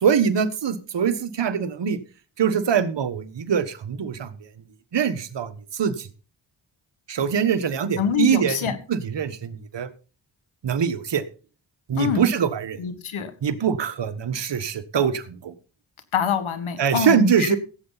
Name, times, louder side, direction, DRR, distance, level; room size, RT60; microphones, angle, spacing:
voice 1, 0.0-2.0 2.4-4.3 4.9-6.1 7.1-8.6 8.9-9.9 10.6-11.2 11.9-12.8 13.4-15.5 16.8-17.6, right 7 dB, 60° right, 10 dB, 1.4 m, -23 dB
voice 2, 8.0-8.8 12.0-12.3 12.8-13.3 16.1-17.6, left 8 dB, 85° left, 10 dB, 1.9 m, -25 dB
16.0 x 8.1 x 4.1 m, 0.36 s
cardioid pair, 60°, 47 cm